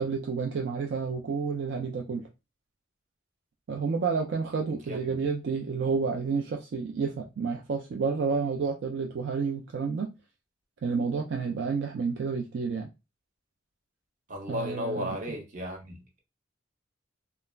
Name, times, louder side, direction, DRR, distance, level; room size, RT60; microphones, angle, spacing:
voice 1, 0.0-2.2 3.7-10.1 10.8-12.9 14.5-15.4, right 5 dB, 65° right, 0.4 m, -30 dB
voice 2, 14.3-16.0, left 1 dB, 40° right, 0.8 m, -34 dB
2.3 x 2.0 x 3.1 m
head